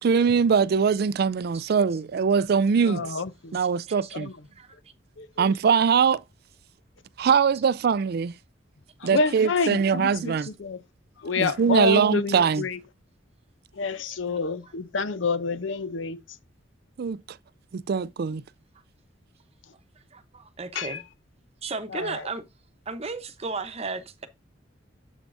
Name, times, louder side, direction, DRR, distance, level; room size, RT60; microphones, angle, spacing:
voice 1, 0.0-3.2 3.5-4.3 5.4-6.2 7.2-8.3 9.0-10.5 11.4-12.7 17.0-17.2 17.7-18.4, right 6 dB, 55° right, 0.4 m, -22 dB
voice 2, 2.9-3.6 4.1-4.3 5.2-5.5 9.0-10.3 10.6-10.8 11.2-12.8 13.8-16.2 20.7-21.0 21.9-22.2, left 4 dB, 75° left, 0.7 m, -28 dB
voice 3, 3.5-4.2 4.5-4.8 10.4-10.5 14.1-14.2 20.1-21.0 21.6-22.4 22.9-24.3, right 3 dB, 35° right, 0.8 m, -35 dB
8.0 x 7.3 x 2.6 m
head